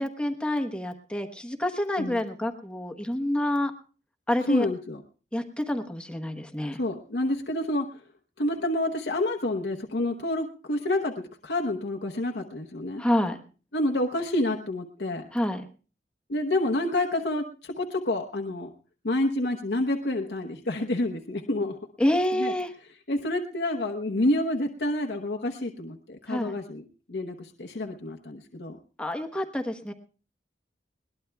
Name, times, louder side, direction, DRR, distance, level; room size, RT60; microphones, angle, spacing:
voice 1, 0.0-3.7 4.3-4.7 5.3-6.8 13.0-13.4 15.3-15.6 22.0-22.7 26.3-26.5 29.0-29.9, left 1 dB, 5° left, 5 dB, 1.1 m, -28 dB
voice 2, 4.5-5.0 6.7-8.0 8.4-13.0 13.7-15.3 16.3-18.7 19.0-21.8 22.3-22.5 23.1-28.8, left 1 dB, 80° left, 2 dB, 1.0 m, -28 dB
21.5 x 19.0 x 2.3 m, 0.38 s
head